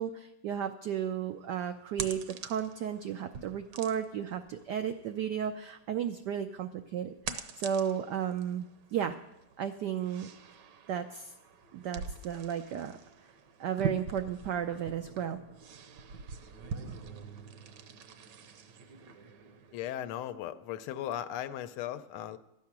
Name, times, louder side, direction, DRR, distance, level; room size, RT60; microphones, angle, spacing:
voice 1, 0.0-9.2 9.6-10.3 10.9-11.3 11.7-13.0 13.6-15.4, right 9 dB, 85° right, 8 dB, 0.9 m, -34 dB
sound 1, 1.0-19.9, right 6 dB, 65° right, 1.2 m, -44 dB
voice 2, 19.7-22.4, left 11 dB, 80° left, 11 dB, 1.5 m, -37 dB
12.5 x 8.6 x 5.9 m, 0.88 s
omnidirectional pair, 2.4 m